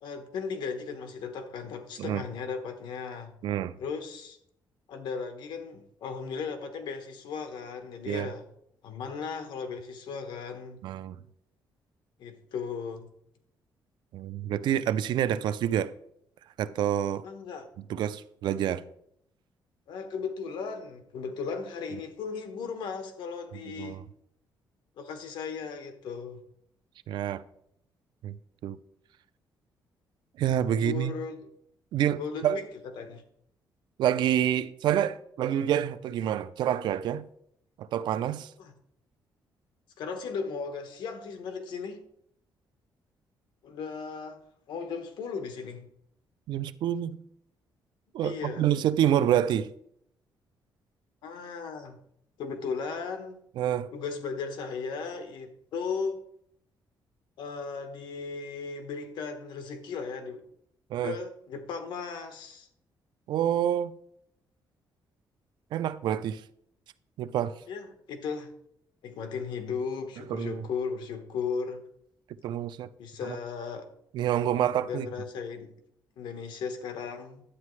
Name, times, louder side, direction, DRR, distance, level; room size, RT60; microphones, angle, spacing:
voice 1, 0.0-3.3 3.8-4.4 4.9-8.4 8.8-10.8 12.2-13.1 17.2-17.7 19.9-24.0 25.0-26.4 30.7-31.3 32.2-33.2 38.6-38.7 40.0-42.0 43.6-44.4 44.7-45.9 48.2-48.6 51.2-52.0 52.4-53.4 53.9-56.2 57.4-60.4 61.0-62.7 67.7-68.5 69.0-71.8 73.0-73.9 74.8-75.7 76.2-77.4, left 5 dB, 75° left, 1.2 m, -36 dB
voice 2, 3.4-3.7 8.1-8.3 10.8-11.2 14.1-15.9 16.6-17.2 17.9-18.8 23.8-24.0 27.1-27.4 28.2-28.4 28.6-28.8 30.4-31.2 31.9-32.6 34.0-37.2 37.8-38.5 46.5-47.2 48.1-49.7 53.6-53.9 60.9-61.2 63.3-63.9 65.7-66.4 67.2-67.6 70.3-70.7 72.4-72.9 73.2-73.4 74.1-75.1, right 10 dB, 70° right, 0.4 m, -27 dB
11.0 x 8.3 x 3.2 m
cardioid pair, 165°, 8 cm